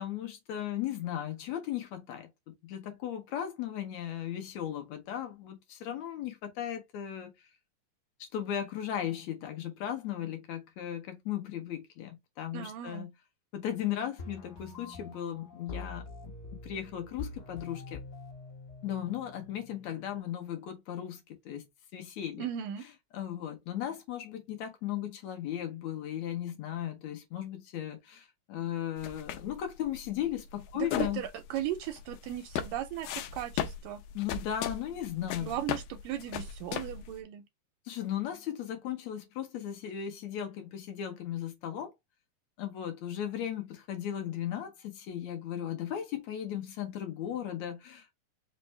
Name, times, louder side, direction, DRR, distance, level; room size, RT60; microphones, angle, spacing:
voice 1, 0.0-7.3 8.2-13.1 13.5-16.1 16.5-18.0 18.8-21.7 21.9-22.4 23.1-31.2 34.1-35.6 37.9-41.9 42.6-48.1, left 10 dB, 70° left, 1.8 m, -36 dB
voice 2, 12.5-13.1 22.4-22.8 30.8-34.0 35.4-37.4, right 11 dB, 80° right, 2.0 m, -37 dB
sound 1, 14.2-20.2, left 3 dB, 45° left, 1.3 m, -45 dB
sound 2, 29.0-37.2, left 10 dB, 90° left, 1.7 m, -38 dB
5.3 x 2.4 x 3.3 m
omnidirectional pair, 4.1 m